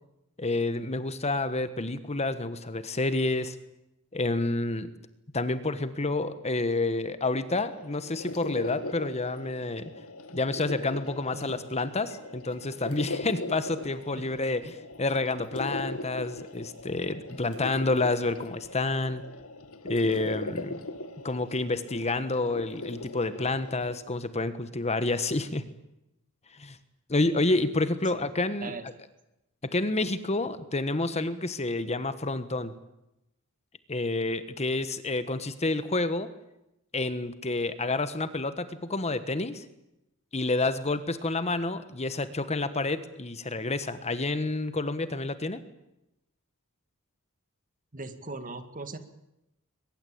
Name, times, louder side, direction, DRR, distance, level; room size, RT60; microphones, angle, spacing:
voice 1, 0.4-3.6 4.1-4.9 5.3-9.9 10.3-19.2 19.8-20.8 21.2-25.6 26.6-26.8 27.1-28.7 29.7-32.7 33.9-36.3 36.9-39.6 40.3-45.6, left 2 dB, 30° left, 12 dB, 1.3 m, -29 dB
sound 1, 7.7-24.0, left 2 dB, 70° left, 2.1 m, -40 dB
voice 2, 47.9-49.0, right 3 dB, 35° right, 10 dB, 2.0 m, -39 dB
22.5 x 21.5 x 8.7 m, 0.89 s
head